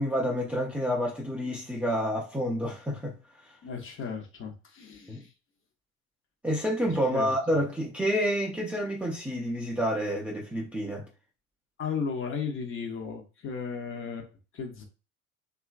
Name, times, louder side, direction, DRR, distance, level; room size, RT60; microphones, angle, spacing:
voice 1, 0.0-3.5 5.1-5.3 6.4-11.1, equal, 5° right, 0.4 m, -29 dB
voice 2, 3.6-5.3 7.1-7.3 11.8-14.3 14.5-14.8, left 6 dB, 30° left, 0.8 m, -35 dB
2.9 x 2.4 x 2.4 m
hypercardioid pair, 75°, 41 cm